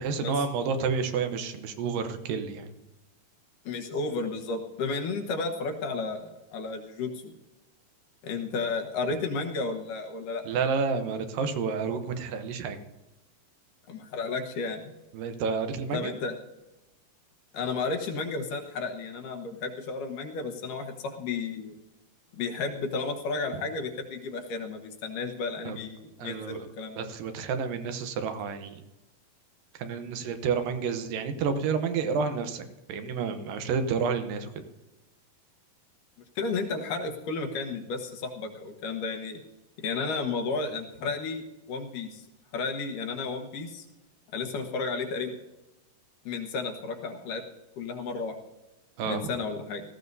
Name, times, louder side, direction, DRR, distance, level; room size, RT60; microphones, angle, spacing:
voice 1, 0.0-2.7 10.5-12.8 15.1-16.1 25.7-25.8 26.2-26.7 27.0-28.8 29.8-32.6 32.9-34.5 49.0-49.3, right 5 dB, 80° right, 8 dB, 2.6 m, -30 dB
voice 2, 3.7-7.3 8.2-10.5 13.9-14.9 15.9-16.3 17.5-21.7 22.3-27.1 36.4-39.4 39.8-41.4 41.7-42.2 42.5-43.9 44.3-45.3 46.3-47.4 47.8-48.3 49.1-49.8, left 4 dB, 70° left, 3 dB, 2.7 m, -33 dB
18.0 x 14.5 x 2.7 m, 0.99 s
omnidirectional pair, 4.1 m